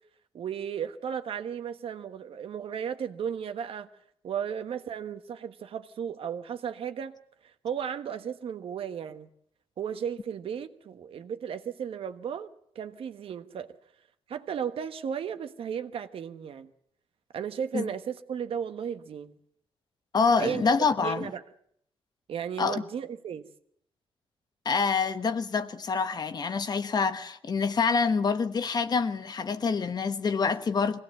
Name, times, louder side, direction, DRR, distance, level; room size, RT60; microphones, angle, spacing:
voice 1, 0.3-3.9 4.2-7.1 7.4-9.3 9.8-13.7 14.3-16.7 17.3-19.4 20.4-20.7 21.0-21.4 22.3-23.5, right 8 dB, 70° right, 1.3 m, -35 dB
voice 2, 20.1-21.3 22.6-22.8 24.6-31.0, left 5 dB, 45° left, 1.2 m, -26 dB
22.5 x 17.5 x 7.6 m
cardioid pair, 115°, 10 cm